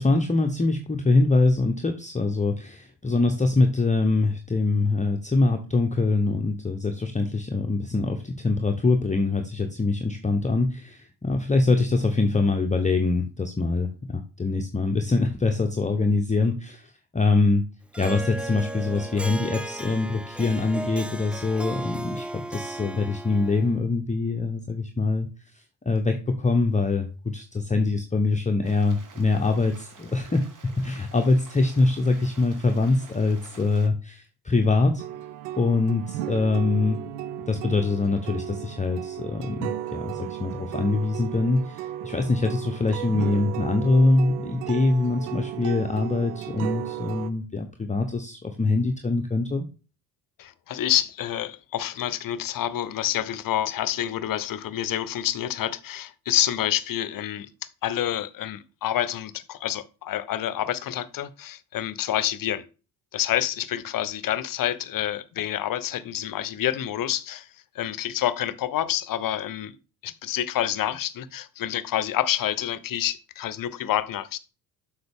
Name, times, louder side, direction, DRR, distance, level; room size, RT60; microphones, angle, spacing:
voice 1, 0.0-17.7 18.0-25.3 25.9-35.0 35.6-37.0 37.5-49.6, left 3 dB, 15° left, 0.8 m, -24 dB
Harp, 17.9-23.8, right 1 dB, 5° right, 0.3 m, -35 dB
Stream, 28.6-33.9, right 4 dB, 40° right, 1.7 m, -49 dB
sound 1, 35.0-47.3, right 12 dB, 75° right, 0.6 m, -35 dB
voice 2, 50.4-57.5 57.8-62.6 63.1-67.5 67.7-69.8 70.0-74.4, left 12 dB, 45° left, 0.7 m, -28 dB
7.8 x 5.7 x 3.5 m
hypercardioid pair, 55°, 47 cm